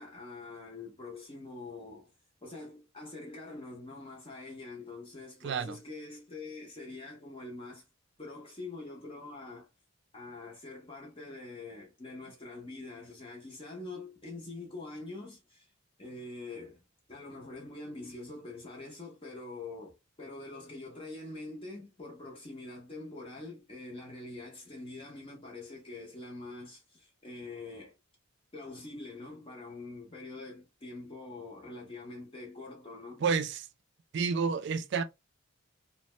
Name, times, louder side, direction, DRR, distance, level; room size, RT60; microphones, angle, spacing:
voice 1, 0.0-2.1 2.4-7.8 8.2-9.7 10.1-15.7 16.0-16.8 17.1-27.9 28.5-33.2, left 2 dB, 25° left, 0.6 m, -44 dB
voice 2, 5.4-5.8 33.2-33.6 34.1-35.0, right 5 dB, 55° right, 0.3 m, -29 dB
2.6 x 2.1 x 3.0 m
head